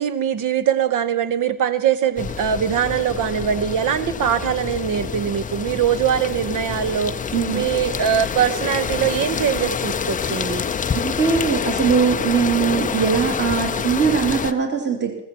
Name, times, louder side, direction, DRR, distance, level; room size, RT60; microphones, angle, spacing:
voice 1, 0.0-7.1 7.5-10.7, right 9 dB, 40° right, 14 dB, 1.1 m, -22 dB
sound 1, 2.2-14.5, left 7 dB, 15° left, 0.6 m, -27 dB
voice 2, 7.3-7.7 11.0-15.2, right 6 dB, 20° right, 3 dB, 2.7 m, -21 dB
15.0 x 14.5 x 4.4 m, 0.89 s
hypercardioid pair, 80°, 49 cm